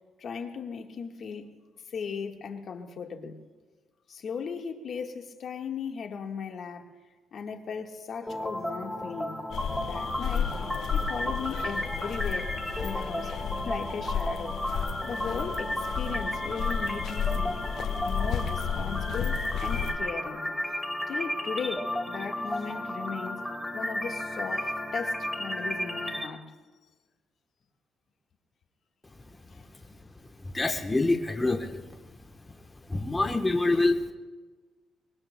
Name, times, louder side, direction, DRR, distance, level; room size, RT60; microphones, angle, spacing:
voice 1, 0.2-1.5 1.9-3.3 4.1-6.9 7.3-9.3 9.8-10.5 10.9-12.5 12.8-13.3 13.6-14.6 15.0-17.6 18.0-20.4 21.1-26.4, left 6 dB, 60° left, 4 dB, 1.5 m, -37 dB
sound 1, 8.3-26.3, left 1 dB, ahead, 1.4 m, -33 dB
sound 2, 9.5-20.0, left 7 dB, 80° left, 1.2 m, -33 dB
voice 2, 30.4-31.8 32.9-34.1, left 2 dB, 20° left, 4 dB, 1.1 m, -26 dB
23.5 x 22.0 x 2.2 m, 1.3 s
cardioid pair, 90°, 0 cm